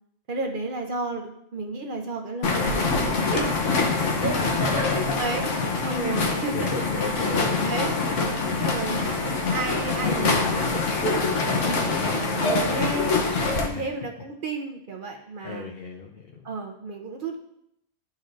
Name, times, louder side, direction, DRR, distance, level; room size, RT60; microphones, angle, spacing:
voice 1, 0.3-3.5 4.2-5.5 5.8-6.7 7.0-7.9 8.6-11.0 11.3-15.8 16.4-17.4, right 3 dB, 50° right, 2 dB, 0.8 m, -33 dB
sound 1, 2.4-13.7, left 3 dB, 70° left, 1.2 m, -25 dB
voice 2, 4.1-5.2 5.8-7.9 13.7-13.9 15.4-16.5, left 3 dB, 55° left, 0 dB, 0.9 m, -33 dB
12.5 x 4.2 x 2.5 m, 0.79 s
omnidirectional pair, 1.3 m